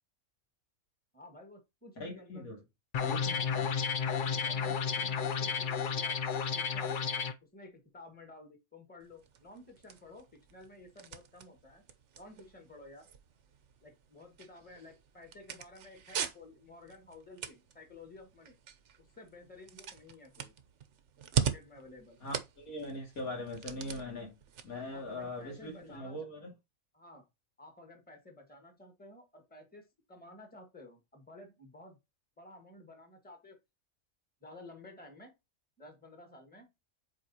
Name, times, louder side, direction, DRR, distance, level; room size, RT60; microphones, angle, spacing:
voice 1, 1.1-2.5 3.3-3.7 4.2-7.0 7.4-10.2 10.5-11.8 12.1-13.1 13.8-18.5 19.0-20.5 21.3-22.2 24.9-26.2 26.9-27.2 27.6-32.0 32.4-33.6 34.4-35.3 35.8-36.7, left 2 dB, 5° left, 1.5 m, -53 dB
voice 2, 2.0-2.6 3.0-3.4 22.2-24.4 24.6-26.5, left 1 dB, 90° left, 2.8 m, -41 dB
sound 1, 2.9-7.3, left 6 dB, 50° left, 0.6 m, -32 dB
sound 2, 9.0-26.0, right 8 dB, 60° right, 1.1 m, -42 dB
7.8 x 4.8 x 2.8 m
omnidirectional pair, 1.5 m